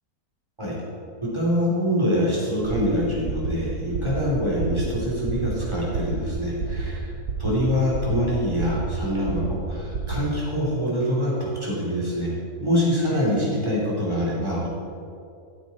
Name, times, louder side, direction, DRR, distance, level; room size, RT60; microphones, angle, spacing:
voice 1, 1.3-7.1 7.4-12.3 12.6-14.7, equal, 20° right, -6 dB, 3.1 m, -24 dB
sound 1, 2.6-10.3, right 4 dB, 70° right, 1.3 m, -31 dB
14.0 x 8.8 x 4.2 m, 2.5 s
omnidirectional pair, 1.6 m